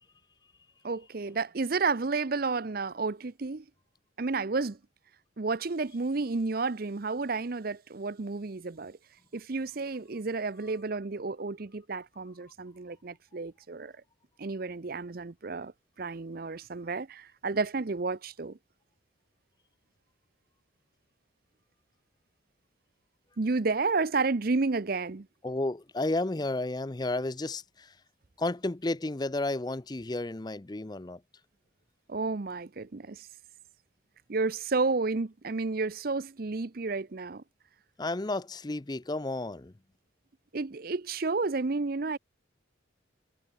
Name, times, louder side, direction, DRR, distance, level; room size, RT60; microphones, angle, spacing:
voice 1, 0.8-3.6 4.2-4.8 5.4-9.0 9.3-13.9 14.4-15.7 16.0-18.6 23.4-25.3 32.1-33.3 34.3-37.4 40.5-42.2, right 3 dB, 45° right, 0.6 m, -31 dB
voice 2, 25.4-28.0 28.4-31.2 38.0-39.7, left 2 dB, 20° left, 0.6 m, -32 dB
head